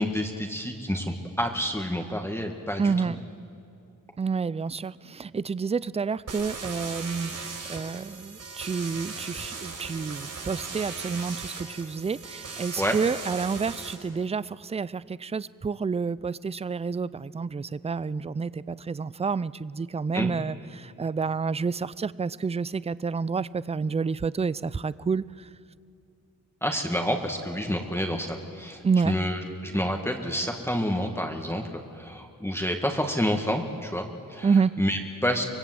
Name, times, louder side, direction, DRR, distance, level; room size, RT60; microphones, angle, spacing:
voice 1, 0.0-2.9 12.8-13.0 20.1-20.3 26.6-34.5 34.8-35.4, equal, 5° left, 2 dB, 2.0 m, -29 dB
voice 2, 2.8-3.2 4.2-25.5 28.8-29.1 34.4-34.7, right 5 dB, 20° right, 19 dB, 0.5 m, -29 dB
sound 1, 6.3-13.9, right 4 dB, 55° right, 5.6 m, -38 dB
25.0 x 19.0 x 7.9 m, 2.5 s
cardioid pair, 70°, 33 cm